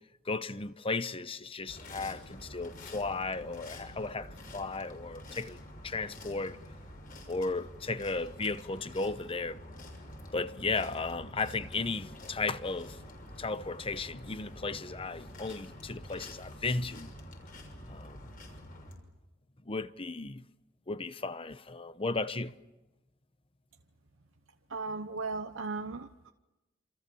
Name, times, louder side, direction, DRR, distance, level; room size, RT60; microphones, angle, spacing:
voice 1, 0.3-5.6 5.8-6.6 7.3-9.6 10.3-13.0 13.4-17.1 17.8-18.2 19.7-20.4 20.9-22.5, left 3 dB, 30° left, 0.9 m, -35 dB
sound 1, 1.7-19.0, left 1 dB, 45° left, 6.1 m, -48 dB
voice 2, 24.7-26.3, right 3 dB, 85° right, 1.0 m, -37 dB
28.0 x 27.0 x 7.0 m
head